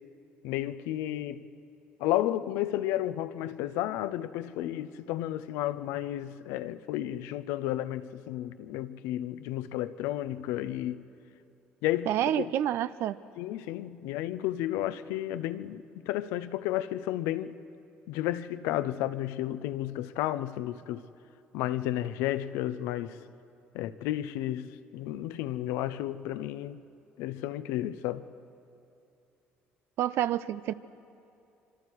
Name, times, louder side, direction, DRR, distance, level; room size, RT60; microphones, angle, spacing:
voice 1, 0.4-1.5 2.0-11.0 11.8-12.5 13.4-17.6 18.1-21.0 21.5-23.2 23.7-26.8 27.2-28.2, left 13 dB, 85° left, 0.7 m, -32 dB
voice 2, 12.1-13.2 30.0-30.7, right 11 dB, 70° right, 0.6 m, -28 dB
25.5 x 25.0 x 4.7 m
supercardioid pair, 85°, 4 cm